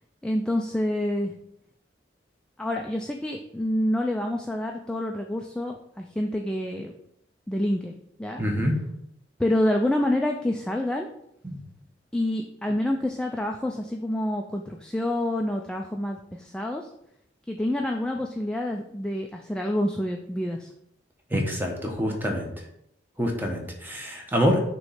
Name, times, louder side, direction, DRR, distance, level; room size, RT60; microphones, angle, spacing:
voice 1, 0.2-1.3 2.6-6.9 7.5-7.9 8.2-8.4 9.4-11.1 12.1-16.9 17.5-20.7, left 1 dB, 5° left, 1 dB, 0.3 m, -27 dB
voice 2, 8.4-8.8 11.4-11.6 21.3-22.5 23.2-24.6, equal, 10° right, 1 dB, 1.0 m, -26 dB
6.2 x 3.1 x 5.7 m, 0.76 s
head